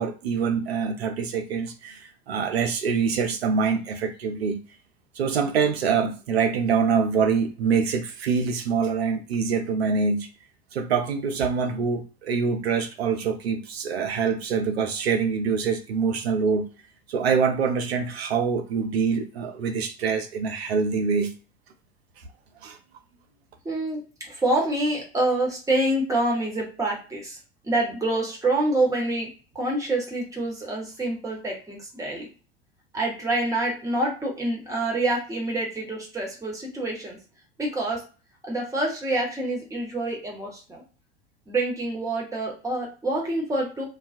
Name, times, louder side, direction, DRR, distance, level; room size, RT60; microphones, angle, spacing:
voice 1, 0.0-4.6 5.2-10.3 10.7-16.7 17.1-21.4 22.6-22.8, right 5 dB, 70° right, 0.6 m, -25 dB
voice 2, 23.6-24.0 24.3-27.4 27.6-29.3 29.5-32.3 32.9-37.2 37.6-38.0 38.4-40.8 41.5-43.8, right 2 dB, 10° right, 1.1 m, -26 dB
2.3 x 2.2 x 2.5 m
figure-of-eight pair, 80°, 32 cm